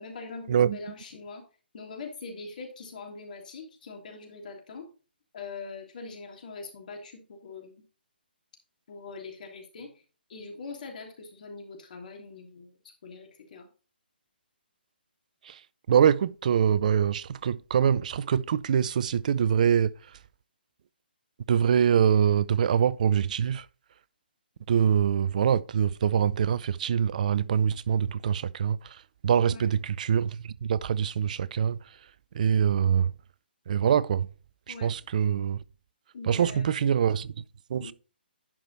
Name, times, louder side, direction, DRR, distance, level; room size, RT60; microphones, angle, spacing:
voice 1, 0.0-1.4 1.7-4.9 5.3-7.8 8.9-9.9 10.3-13.7 29.3-29.8 34.7-34.9 36.1-36.8 37.8-37.9, left 4 dB, 50° left, 3.1 m, -42 dB
voice 2, 15.9-19.9 21.5-23.6 24.7-28.8 29.2-31.8 32.3-33.1 33.7-34.3 34.7-35.6 36.3-37.4 37.7-37.9, right 8 dB, 45° right, 0.5 m, -24 dB
11.0 x 5.0 x 4.2 m
figure-of-eight pair, 140°, 6 cm